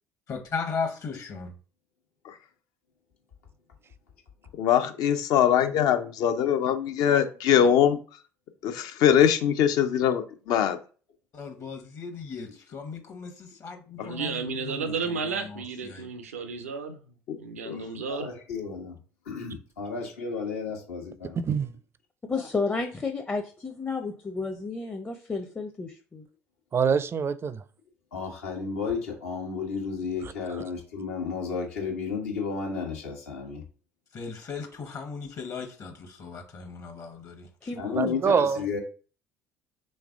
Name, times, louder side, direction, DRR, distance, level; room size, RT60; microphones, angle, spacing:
voice 1, 0.3-1.5 11.3-14.9 15.3-16.1 34.1-38.0, left 5 dB, 45° left, 0.9 m, -37 dB
voice 2, 4.6-8.0 8.6-10.8 14.0-14.1 17.3-17.4 17.7-17.8, left 9 dB, 65° left, 0.6 m, -22 dB
voice 3, 14.0-17.0 17.4-18.3, right 5 dB, 90° right, 0.5 m, -33 dB
voice 4, 18.1-19.0 19.2-21.4 28.1-33.6 37.8-38.8, left 5 dB, 85° left, 1.2 m, -33 dB
voice 5, 21.4-21.7 26.7-27.6 30.5-30.6 38.0-38.6, right 6 dB, 35° right, 0.4 m, -25 dB
voice 6, 22.3-26.3 37.6-38.2, left 4 dB, 20° left, 0.6 m, -32 dB
3.5 x 3.2 x 3.6 m
hypercardioid pair, 60°, 7 cm